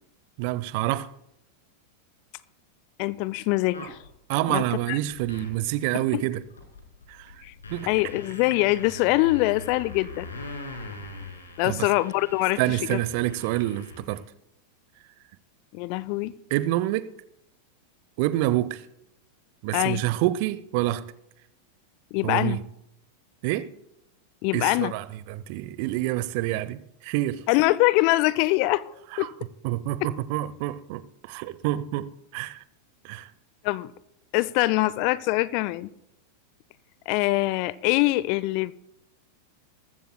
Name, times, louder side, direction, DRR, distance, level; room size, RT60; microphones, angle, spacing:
voice 1, 0.4-1.1 4.3-6.4 7.1-7.3 7.7-7.9 11.6-11.9 12.6-14.2 16.5-17.1 18.2-18.8 19.6-21.0 22.2-22.6 23.4-23.7 24.5-27.4 29.1-29.3 29.6-32.6 33.0-33.3, right 15 dB, 45° right, 0.6 m, -27 dB
voice 2, 3.0-4.0 4.5-5.0 5.9-6.2 7.4-7.5 7.9-10.3 11.6-13.0 15.7-16.3 19.7-20.0 22.1-22.6 24.4-24.9 27.5-29.3 33.6-33.9 34.3-35.9 37.1-38.7, left 19 dB, 45° left, 0.5 m, -24 dB
sound 1, 3.7-4.1 5.0-5.6 6.0-6.1 6.4-14.2, left 3 dB, 70° left, 2.6 m, -42 dB
20.0 x 15.0 x 2.2 m
figure-of-eight pair, 90°, 0 cm